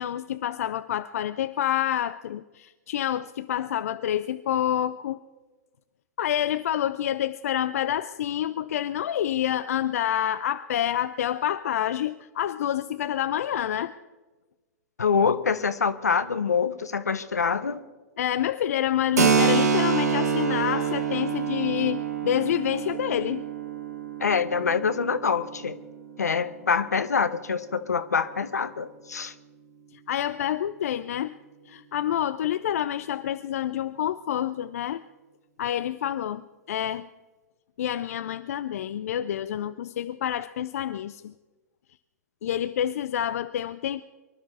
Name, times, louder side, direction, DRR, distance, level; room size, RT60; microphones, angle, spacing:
voice 1, 0.0-5.2 6.2-13.9 18.2-23.4 30.1-31.3 31.7-35.0 35.6-36.4 36.7-37.1 37.8-41.3 42.4-44.0, left 11 dB, 65° left, 13 dB, 0.5 m, -28 dB
voice 2, 15.0-17.8 24.2-25.8 26.2-29.3, left 6 dB, 80° left, 13 dB, 1.0 m, -25 dB
Keyboard (musical), 19.2-26.5, right 6 dB, 75° right, 1.6 m, -27 dB
24.0 x 12.0 x 4.2 m, 1.2 s
figure-of-eight pair, 105°, 9 cm